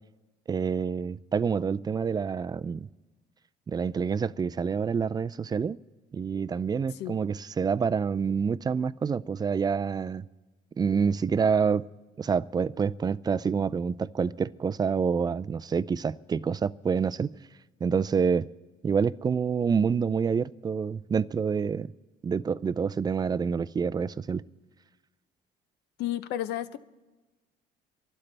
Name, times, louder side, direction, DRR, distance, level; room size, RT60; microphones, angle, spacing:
voice 1, 0.5-2.9 3.7-5.8 6.1-10.2 10.8-11.9 12.2-17.4 17.8-18.5 18.8-21.9 22.2-24.4, right 6 dB, 25° right, 0.3 m, -27 dB
voice 2, 26.0-26.8, left 13 dB, 80° left, 0.7 m, -32 dB
27.0 x 12.0 x 3.4 m
cardioid pair, 110°, 17 cm